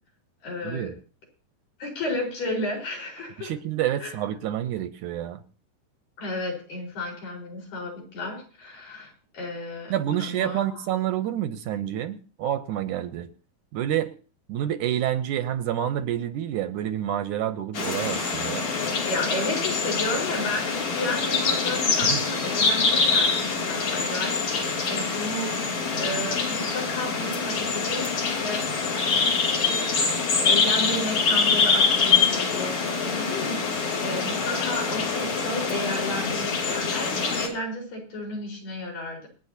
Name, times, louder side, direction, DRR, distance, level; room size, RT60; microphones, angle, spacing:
voice 1, 0.4-0.9 1.8-3.5 4.0-4.2 6.2-9.9 10.2-10.8 19.1-28.9 29.3-29.9 30.4-39.3, left 1 dB, 75° left, -1 dB, 6.5 m, -33 dB
voice 2, 3.4-5.4 9.9-13.3 13.7-14.1 14.5-18.7 22.0-22.2, right 11 dB, 75° right, 10 dB, 2.1 m, -28 dB
sound 1, 17.7-37.5, left 4 dB, 55° left, 4.2 m, -25 dB
27.0 x 9.4 x 2.9 m, 0.38 s
omnidirectional pair, 3.9 m